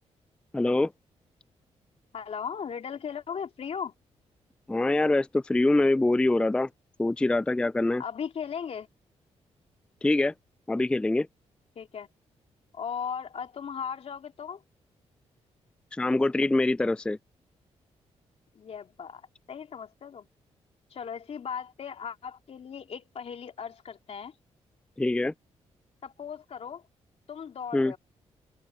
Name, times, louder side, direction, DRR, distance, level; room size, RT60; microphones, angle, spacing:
voice 1, 0.5-0.9 4.7-6.7 7.0-8.0 10.0-10.3 10.7-11.3 15.9-17.2 25.0-25.3 27.7-27.9, left 2 dB, 10° left, 0.3 m, -24 dB
voice 2, 2.1-3.9 8.0-8.9 11.7-12.1 12.7-14.6 18.5-20.3 20.9-24.3 26.0-26.8 27.3-28.0, left 7 dB, 60° left, 3.1 m, -37 dB
cardioid pair, 80°, 12 cm